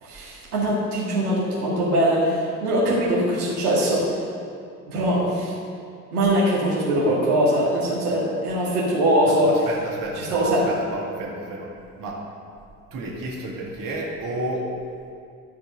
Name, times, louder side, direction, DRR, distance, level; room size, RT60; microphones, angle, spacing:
voice 1, 0.0-4.1 4.9-5.5 6.1-9.5 10.1-10.7, right 1 dB, 80° right, -6 dB, 2.2 m, -22 dB
voice 2, 9.4-11.7 12.0-12.2 12.9-14.7, right 1 dB, 45° right, -3 dB, 2.3 m, -31 dB
13.5 x 5.2 x 6.4 m, 2.3 s
hypercardioid pair, 60°, 45 cm